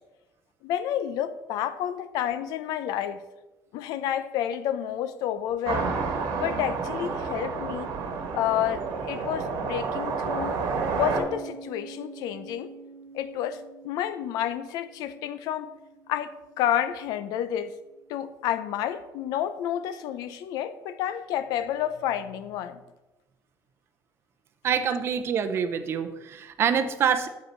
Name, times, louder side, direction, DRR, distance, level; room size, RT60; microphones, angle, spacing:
voice 1, 0.6-3.2 3.7-6.0 6.4-7.9 8.3-10.6 10.9-12.7 13.1-15.7 16.1-17.7 18.1-22.8, left 10 dB, 80° left, 13 dB, 0.6 m, -30 dB
sound 1, 5.6-11.2, right 4 dB, 75° right, 1.4 m, -30 dB
Piano, 11.1-18.4, right 3 dB, 25° left, 2.4 m, -48 dB
voice 2, 24.6-27.3, right 7 dB, 40° right, 9 dB, 0.6 m, -26 dB
8.2 x 6.6 x 4.4 m, 1.1 s
cardioid pair, 175°, 7 cm